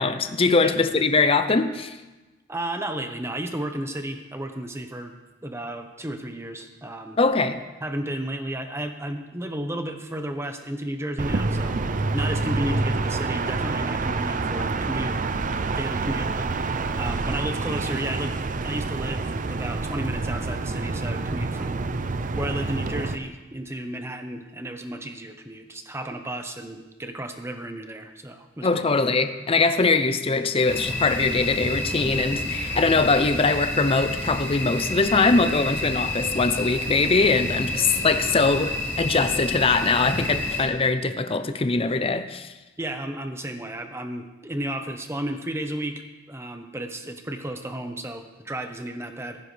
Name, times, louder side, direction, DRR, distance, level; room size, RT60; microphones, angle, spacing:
voice 1, 0.0-2.0 7.2-7.6 28.6-42.5, left 3 dB, 30° left, 10 dB, 0.6 m, -22 dB
voice 2, 2.5-5.1 5.4-7.2 7.8-15.2 15.6-18.4 18.6-21.8 22.3-28.7 42.8-46.0 46.3-49.4, right 1 dB, 15° right, 6 dB, 1.0 m, -33 dB
sound 1, 11.2-23.1, right 3 dB, 45° right, 0.5 m, -27 dB
sound 2, 30.7-40.6, left 1 dB, 10° left, 2.4 m, -29 dB
15.5 x 14.5 x 3.4 m, 1.1 s
head